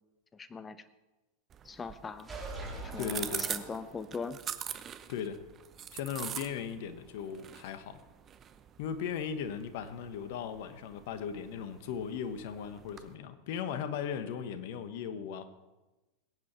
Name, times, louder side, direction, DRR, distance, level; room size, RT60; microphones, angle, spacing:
voice 1, 0.3-0.8 1.6-2.3 2.9-4.4, left 5 dB, 20° left, 14 dB, 0.9 m, -40 dB
sound 1, 1.5-13.1, right 9 dB, 30° right, 0.9 m, -44 dB
sound 2, 2.2-4.3, right 2 dB, 15° right, 4.1 m, -43 dB
voice 2, 3.0-3.5 5.1-5.4 5.9-8.0 8.8-15.5, left 7 dB, 60° left, 11 dB, 1.2 m, -37 dB
21.5 x 8.9 x 4.5 m, 1.1 s
hypercardioid pair, 90°, 0 cm